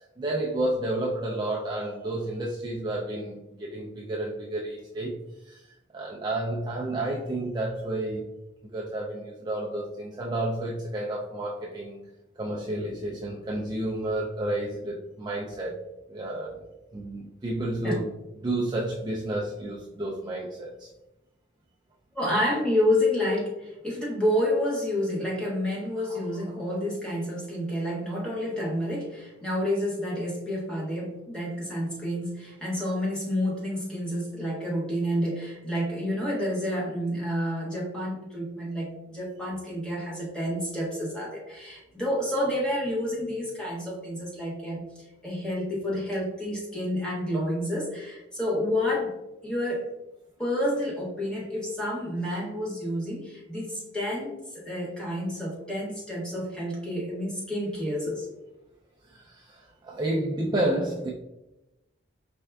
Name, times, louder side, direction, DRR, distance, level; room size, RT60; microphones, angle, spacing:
voice 1, 0.2-5.2 5.4-8.3 8.6-12.0 12.4-15.8 16.1-16.6 16.9-18.1 18.4-20.9 26.1-26.3 59.1-61.1, right 1 dB, 20° right, -3 dB, 0.4 m, -31 dB
voice 2, 22.1-49.1 49.4-49.9 50.4-58.3, left 1 dB, 5° left, -5 dB, 1.0 m, -29 dB
4.5 x 3.4 x 2.3 m, 0.96 s
head